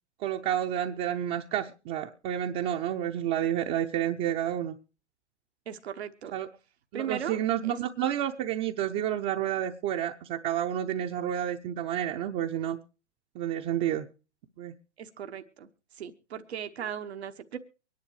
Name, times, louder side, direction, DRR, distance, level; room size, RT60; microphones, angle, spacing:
voice 1, 0.2-4.7 6.3-6.5 6.9-12.8 13.3-14.1 14.6-14.7, right 11 dB, 30° right, 3 dB, 0.7 m, -30 dB
voice 2, 5.7-6.3 6.9-7.8 15.0-15.7 15.9-17.6, right 8 dB, 70° right, 7 dB, 1.1 m, -38 dB
24.0 x 10.5 x 3.1 m, 0.33 s
figure-of-eight pair, 105°, 34 cm